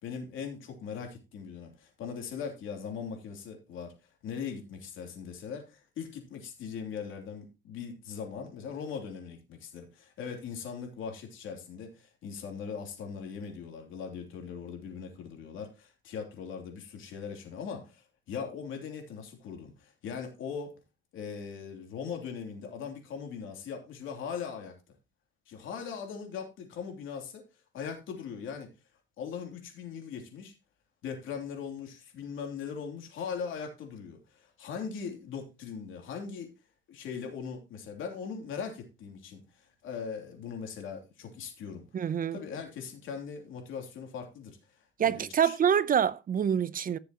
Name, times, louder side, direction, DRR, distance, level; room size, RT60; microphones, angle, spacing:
voice 1, 0.0-3.9 4.2-20.8 21.1-24.7 25.5-27.4 27.7-28.7 29.2-30.5 31.0-36.5 36.9-41.9 42.3-45.6, left 6 dB, 85° left, 3.2 m, -40 dB
voice 2, 41.9-42.4 45.0-47.0, right 8 dB, 45° right, 0.6 m, -26 dB
15.5 x 6.9 x 3.0 m
cardioid pair, 90°, 20 cm